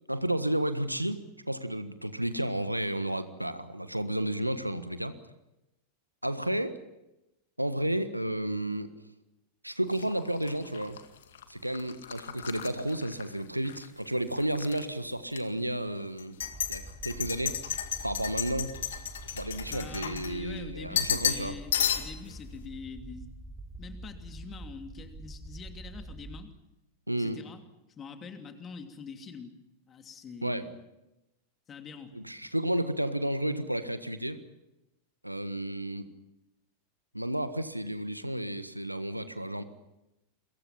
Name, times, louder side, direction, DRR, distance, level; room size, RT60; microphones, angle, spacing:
voice 1, 0.1-5.1 6.2-6.8 7.6-8.9 9.6-11.0 11.5-16.4 16.7-17.6 18.0-18.8 19.3-21.5 27.1-27.4 30.4-30.6 32.1-34.4 35.2-36.1 37.1-39.6, right 1 dB, 90° right, 12 dB, 1.4 m, -32 dB
sound 1, 9.9-13.9 14.2-14.8 15.3-15.4 16.2-20.6 21.0-21.5 21.7-22.3, left 9 dB, 65° left, 2.0 m, -33 dB
sound 2, 16.4-26.4, right 2 dB, 5° right, 4.1 m, -45 dB
voice 2, 19.7-23.5 23.8-26.5 27.1-27.6 28.0-29.6 29.9-30.7 31.7-32.1, left 5 dB, 25° left, 6 dB, 2.9 m, -45 dB
29.5 x 23.0 x 5.8 m, 0.94 s
figure-of-eight pair, 90°, 0 cm